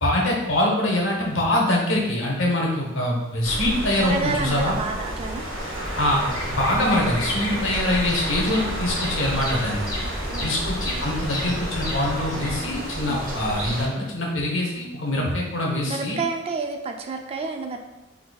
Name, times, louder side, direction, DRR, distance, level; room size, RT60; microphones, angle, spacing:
voice 1, 0.0-4.8 6.0-6.3 6.6-9.8 10.4-16.2, left 1 dB, 75° left, -2 dB, 0.9 m, -24 dB
sound 1, 3.4-13.9, equal, 80° right, 0.7 m, -30 dB
voice 2, 4.0-5.5 10.0-10.5 13.1-13.2 15.2-15.3 15.8-17.8, right 4 dB, 30° right, 5 dB, 0.3 m, -30 dB
Bird vocalization bird call bird song, 6.2-12.6, left 1 dB, 20° left, 0.6 m, -34 dB
4.0 x 2.7 x 2.3 m, 1.0 s
head